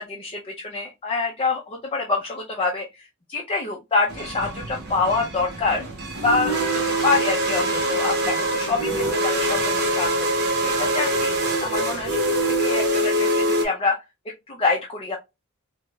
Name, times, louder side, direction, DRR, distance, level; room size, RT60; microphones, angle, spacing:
voice 1, 0.1-5.8 6.2-6.5 7.0-10.3 10.6-11.3 11.6-12.2 12.5-14.0 14.5-15.2, left 3 dB, 25° left, -1 dB, 0.5 m, -26 dB
sound 1, 4.1-13.6, right 1 dB, 50° right, 0.8 m, -24 dB
4.6 x 2.0 x 2.2 m, 0.23 s
head